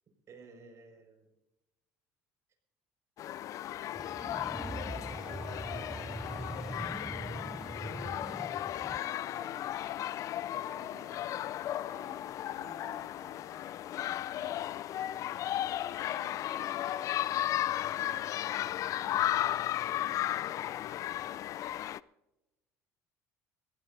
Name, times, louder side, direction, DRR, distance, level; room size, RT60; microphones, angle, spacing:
voice 1, 0.3-1.3 4.5-6.6 9.2-9.7 10.5-13.9 15.9-16.3 18.0-18.6, right 4 dB, 45° right, 4 dB, 5.4 m, -56 dB
sound 1, 3.2-22.0, left 12 dB, 55° left, 0.4 m, -35 dB
sound 2, 3.9-9.0, right 2 dB, 10° right, 0.5 m, -42 dB
voice 2, 8.9-9.5 14.3-14.7 16.0-17.1, left 8 dB, 70° left, 4 dB, 2.6 m, -50 dB
21.5 x 16.5 x 2.7 m, 1.0 s
supercardioid pair, 95°, 7 cm